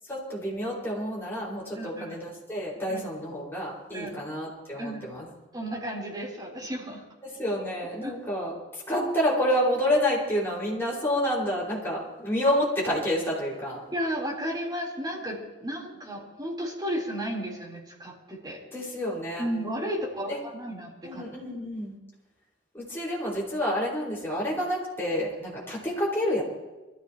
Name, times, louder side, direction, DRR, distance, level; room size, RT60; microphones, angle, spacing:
voice 1, 0.1-5.3 7.4-13.8 18.7-19.5 20.3-20.4 21.0-22.0 22.7-26.4, equal, 15° left, -6 dB, 5.3 m, -29 dB
voice 2, 1.7-2.2 2.9-3.1 3.9-4.1 4.8-5.1 5.5-7.0 8.0-8.1 13.9-18.6 19.4-21.2, equal, 25° right, -3 dB, 3.9 m, -33 dB
24.0 x 14.5 x 3.1 m, 1.1 s
head